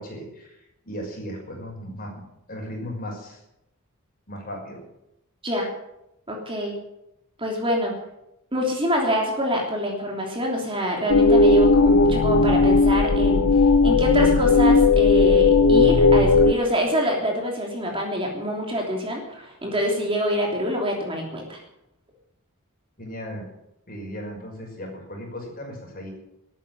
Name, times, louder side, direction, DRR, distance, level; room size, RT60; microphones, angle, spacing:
voice 1, 0.0-2.2 2.5-3.4 4.3-4.8 23.0-23.5 23.9-26.1, equal, 40° left, 0 dB, 5.7 m, -36 dB
voice 2, 6.3-6.8 7.4-7.9 8.5-21.6, equal, 25° right, 0 dB, 3.2 m, -26 dB
sound 1, 11.1-16.5, left 3 dB, 70° left, 0.7 m, -16 dB
13.5 x 9.3 x 9.3 m, 0.84 s
head